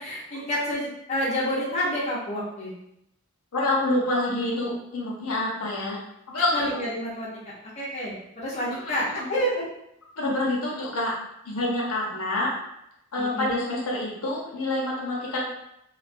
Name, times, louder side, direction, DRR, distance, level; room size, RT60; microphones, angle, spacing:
voice 1, 0.0-2.7 6.5-9.6 13.2-13.6, equal, 30° left, -7 dB, 0.5 m, -29 dB
voice 2, 3.5-6.0 6.3-6.8 8.7-9.3 10.2-11.1 11.5-12.5 13.1-15.4, left 2 dB, 80° left, -3 dB, 0.7 m, -27 dB
2.2 x 2.2 x 2.5 m, 0.79 s
head